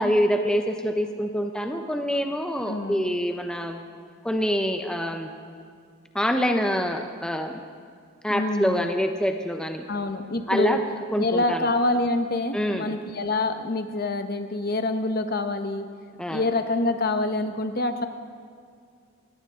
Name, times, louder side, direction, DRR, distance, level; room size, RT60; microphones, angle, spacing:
voice 1, 0.0-3.8 4.2-5.3 6.1-7.6 8.2-9.8 10.5-10.8 11.1-11.7 12.5-13.0 16.2-16.4, equal, 5° left, 5 dB, 0.7 m, -25 dB
voice 2, 2.7-3.1 8.3-8.9 9.9-10.8 11.2-15.9 16.3-18.1, left 2 dB, 45° left, 8 dB, 0.9 m, -26 dB
21.0 x 17.0 x 3.7 m, 2.2 s
head